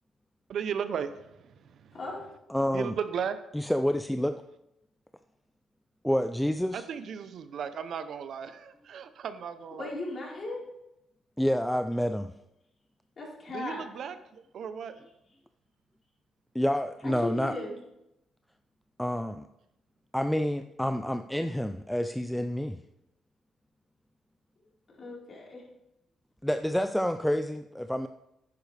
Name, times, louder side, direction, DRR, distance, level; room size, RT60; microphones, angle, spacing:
voice 1, 0.5-2.0 2.7-3.4 6.7-9.9 13.5-15.0, right 7 dB, 65° right, 11 dB, 0.7 m, -36 dB
voice 2, 1.9-2.3 9.8-10.6 13.2-13.9 17.0-17.8 25.0-25.6, left 2 dB, 40° left, -4 dB, 4.3 m, -37 dB
voice 3, 2.5-3.0 3.5-4.3 6.0-6.8 11.4-12.3 16.5-17.5 19.0-19.5 20.1-22.8 26.4-28.1, equal, 5° left, 8 dB, 0.4 m, -28 dB
10.5 x 9.7 x 3.4 m, 0.86 s
cardioid pair, 90°, 0 cm